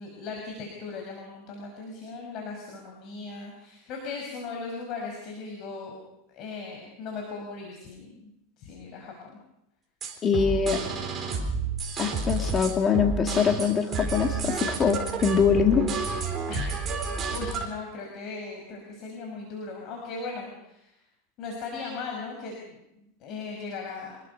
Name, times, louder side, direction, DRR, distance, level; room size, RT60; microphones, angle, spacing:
voice 1, 0.0-6.0 6.3-9.4 16.5-16.6 17.3-21.0 21.4-24.2, left 4 dB, 40° left, 0 dB, 5.8 m, -38 dB
sound 1, 10.0-17.6, right 4 dB, 25° right, 4.2 m, -30 dB
voice 2, 10.2-10.8 12.0-15.8, left 6 dB, 25° left, 3 dB, 2.0 m, -23 dB
26.0 x 20.5 x 5.5 m, 0.84 s
supercardioid pair, 145°, 0 cm